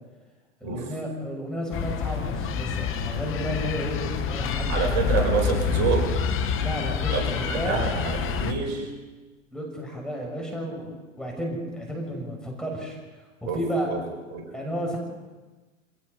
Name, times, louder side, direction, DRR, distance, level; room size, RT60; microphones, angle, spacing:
voice 1, 0.6-4.7 6.6-7.8 9.5-13.0 13.4-13.9 14.5-15.0, equal, ahead, -1 dB, 6.5 m, -32 dB
sound 1, 1.7-8.5, left 6 dB, 30° left, 1.9 m, -27 dB
voice 2, 4.7-6.1 7.1-8.9 13.5-13.6 13.9-14.0 14.3-14.4, right 5 dB, 45° right, 2 dB, 5.7 m, -27 dB
26.5 x 18.5 x 5.5 m, 1.3 s
hypercardioid pair, 100°, 40 cm